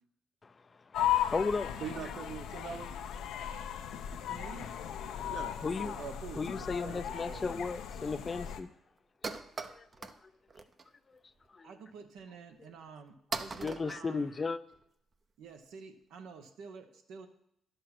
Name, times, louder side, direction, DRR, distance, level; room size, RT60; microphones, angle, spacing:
sound 1, 0.9-8.6, left 10 dB, 85° left, 0.8 m, -36 dB
voice 1, 1.3-1.8 5.4-6.0 6.4-8.7 9.2-9.4 9.7-10.1 11.1-11.2 11.5-11.7 13.6-14.6, left 4 dB, 30° left, 0.5 m, -35 dB
voice 2, 1.8-2.9 5.3-7.7, right 7 dB, 65° right, 1.0 m, -43 dB
voice 3, 4.3-4.7 11.6-14.3 15.4-17.3, right 5 dB, 85° right, 1.2 m, -49 dB
sound 2, 7.9-8.0 8.2-8.3 8.6-8.7 9.0-10.2 10.5-10.9 11.3-11.5 12.2-12.3 12.9-13.0 13.3-14.8, right 4 dB, 35° right, 0.7 m, -40 dB
11.0 x 6.6 x 6.0 m
cardioid pair, 90°, 0 cm